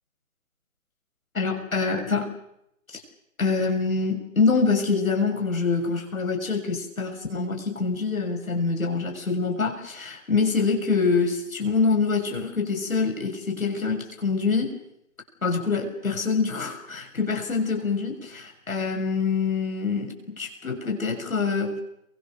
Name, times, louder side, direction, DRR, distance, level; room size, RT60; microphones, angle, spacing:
voice 1, 1.3-2.3 2.9-3.0 3.4-14.7 15.4-21.8, left 4 dB, 80° left, 2 dB, 6.7 m, -25 dB
29.5 x 22.5 x 7.1 m, 0.77 s
figure-of-eight pair, 150°, 41 cm